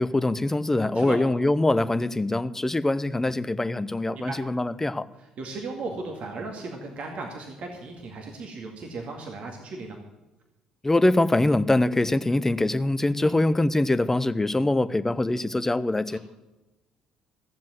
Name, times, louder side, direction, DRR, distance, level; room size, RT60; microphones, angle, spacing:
voice 1, 0.0-5.1 10.8-16.2, left 2 dB, 15° left, 14 dB, 0.7 m, -23 dB
voice 2, 5.4-10.0 13.2-13.4 16.1-16.2, right 3 dB, 55° right, 2 dB, 2.1 m, -36 dB
15.5 x 7.5 x 7.7 m, 1.1 s
hypercardioid pair, 60°, 3 cm